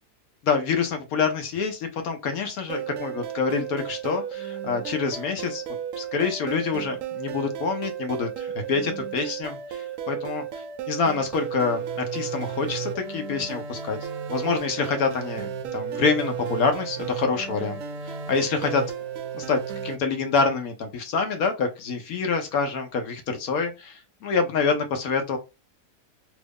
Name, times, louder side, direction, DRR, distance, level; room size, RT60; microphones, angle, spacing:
voice 1, 0.4-5.6 6.0-10.4 10.9-14.0 14.3-17.8 18.0-18.8 19.3-25.4, left 5 dB, 65° left, 6 dB, 1.1 m, -26 dB
sound 1, 2.7-20.0, right 8 dB, 65° right, 0.9 m, -34 dB
3.1 x 2.4 x 3.4 m, 0.26 s
omnidirectional pair, 1.7 m